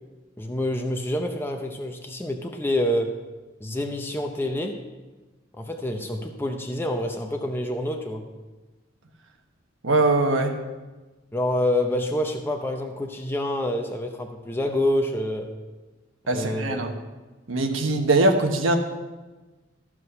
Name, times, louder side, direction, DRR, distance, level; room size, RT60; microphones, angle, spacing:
voice 1, 0.4-3.2 3.6-4.8 5.5-8.2 11.3-15.5 16.3-16.8, left 1 dB, 10° left, 3 dB, 0.7 m, -27 dB
voice 2, 9.8-10.5 16.3-16.9 17.5-18.8, right 2 dB, 85° right, 4 dB, 1.2 m, -21 dB
14.0 x 6.2 x 5.6 m, 1.2 s
head